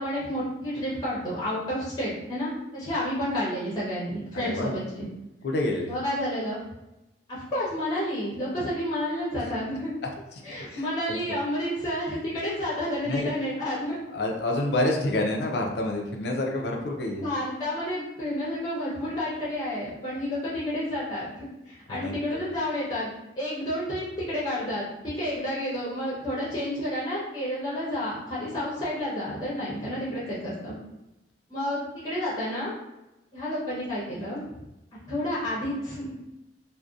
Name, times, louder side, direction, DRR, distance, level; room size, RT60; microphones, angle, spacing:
voice 1, 0.0-5.1 5.9-6.6 7.3-9.9 10.4-14.0 17.2-30.7 31.5-32.7 33.3-34.4 35.1-36.1, left 1 dB, 20° left, -8 dB, 0.7 m, -30 dB
voice 2, 4.3-4.7 5.4-6.0 10.7-11.2 13.0-13.3 14.1-17.2 21.9-22.4, left 1 dB, 60° left, 1 dB, 0.4 m, -28 dB
2.5 x 2.1 x 2.3 m, 0.96 s
head